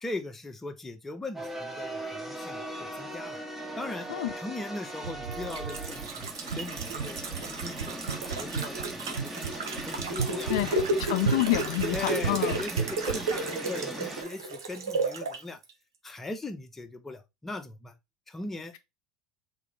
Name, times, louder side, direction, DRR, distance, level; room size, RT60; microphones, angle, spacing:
voice 1, 0.0-3.4 3.8-4.1 4.4-10.8 11.9-15.6 16.0-17.9 18.3-18.8, left 2 dB, 15° left, 0.9 m, -39 dB
sound 1, 1.3-14.2, right 1 dB, 10° right, 1.4 m, -40 dB
sound 2, 5.0-15.4 15.7-15.8, right 4 dB, 85° right, 0.8 m, -32 dB
voice 2, 10.5-12.6, left 15 dB, 70° left, 0.4 m, -28 dB
3.8 x 3.7 x 3.5 m
hypercardioid pair, 80°, 2 cm